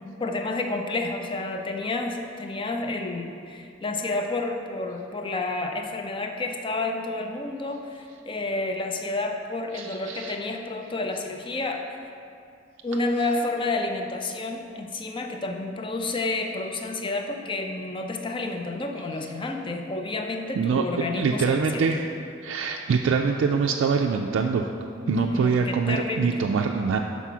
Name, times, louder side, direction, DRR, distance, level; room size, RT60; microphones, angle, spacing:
voice 1, 0.2-12.0 12.8-21.8 25.0-26.4, left 2 dB, 25° left, 4 dB, 0.5 m, -30 dB
voice 2, 9.7-10.4 20.5-20.8 21.2-22.1 22.4-24.7 25.1-27.0, right 5 dB, 80° right, 2 dB, 0.3 m, -24 dB
5.7 x 4.1 x 6.0 m, 2.4 s
head